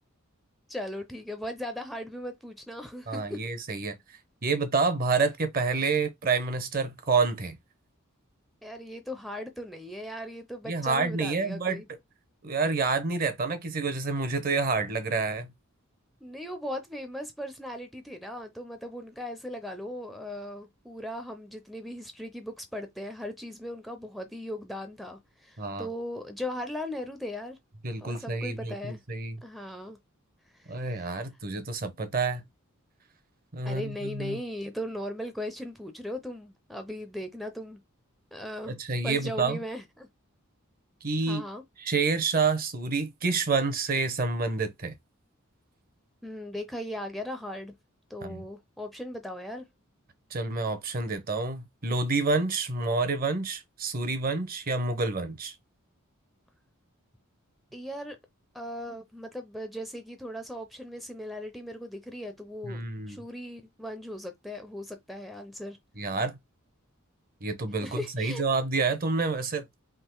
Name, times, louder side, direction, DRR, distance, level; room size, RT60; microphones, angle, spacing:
voice 1, 0.7-3.4 8.6-11.9 16.2-27.6 28.0-29.0 29.4-30.0 30.5-31.1 33.6-37.8 38.3-38.7 39.0-40.1 41.3-41.6 46.2-47.7 48.1-49.7 57.7-58.2 58.5-65.8 67.8-68.4, left 1 dB, ahead, 0.5 m, -38 dB
voice 2, 3.1-3.9 4.4-7.6 10.7-11.8 12.4-15.5 25.6-25.9 27.8-29.4 30.7-32.4 33.5-34.4 38.7-39.6 41.0-41.4 41.8-44.9 48.2-48.4 50.3-55.5 62.6-63.2 66.0-66.4 67.4-69.6, right 4 dB, 45° right, 0.8 m, -28 dB
3.7 x 2.8 x 4.5 m
head